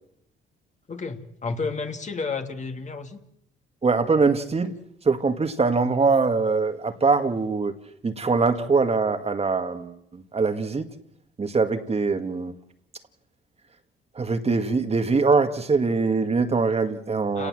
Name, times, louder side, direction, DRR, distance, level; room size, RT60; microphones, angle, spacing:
voice 1, 0.9-3.2 17.4-17.5, left 4 dB, 35° left, 2.5 m, -31 dB
voice 2, 3.8-4.7 5.0-7.8 8.0-10.9 11.4-12.6 14.1-17.5, right 4 dB, 30° right, 1.9 m, -23 dB
29.0 x 18.5 x 7.8 m
cardioid pair, 90°, 20 cm